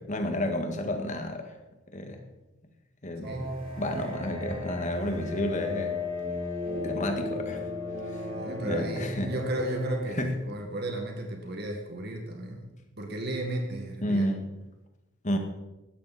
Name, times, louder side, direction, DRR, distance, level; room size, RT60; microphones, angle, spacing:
voice 1, 0.0-1.5 1.9-2.2 3.0-3.4 3.8-5.9 6.8-7.7 8.6-9.3 10.2-10.4 14.0-14.4 15.2-15.4, left 1 dB, 35° left, 5 dB, 1.9 m, -30 dB
sound 1, 3.2-10.1, left 2 dB, 30° right, 5.6 m, -34 dB
voice 2, 3.2-3.6 8.2-14.3, right 1 dB, 50° right, 2 dB, 2.0 m, -34 dB
16.5 x 12.5 x 4.3 m, 1.0 s
head